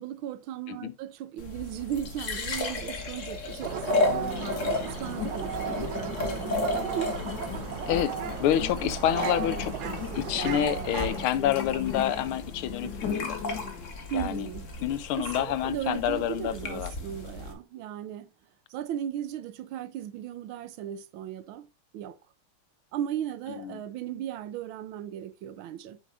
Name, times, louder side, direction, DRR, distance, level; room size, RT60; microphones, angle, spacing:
voice 1, 0.0-7.2 12.8-13.3 14.1-14.7 15.1-18.3 18.7-21.7 21.9-22.2 22.9-26.0, right 10 dB, 80° right, 1.4 m, -36 dB
sound 1, 1.4-17.5, left 2 dB, 40° left, 1.5 m, -34 dB
sound 2, 3.6-11.3, right 8 dB, 60° right, 1.1 m, -35 dB
sound 3, 3.9-13.9, left 9 dB, 60° left, 1.6 m, -38 dB
voice 2, 7.9-9.8 10.1-13.4 14.1-14.5 14.8-16.9 23.6-23.8, left 11 dB, 85° left, 1.6 m, -28 dB
8.4 x 7.1 x 2.5 m
omnidirectional pair, 2.3 m